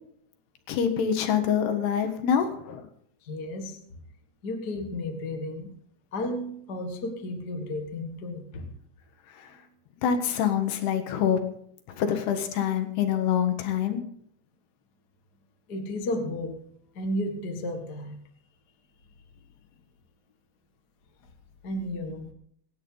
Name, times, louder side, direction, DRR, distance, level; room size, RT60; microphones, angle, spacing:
voice 1, 0.7-2.9 10.0-11.4 12.0-14.0, left 8 dB, 85° left, 6 dB, 3.5 m, -25 dB
voice 2, 3.2-3.8 4.4-5.7 6.1-8.7 15.7-16.6 16.9-18.2 21.6-22.3, left 1 dB, 45° left, 4 dB, 1.3 m, -33 dB
24.0 x 11.0 x 3.9 m, 0.65 s
omnidirectional pair, 4.5 m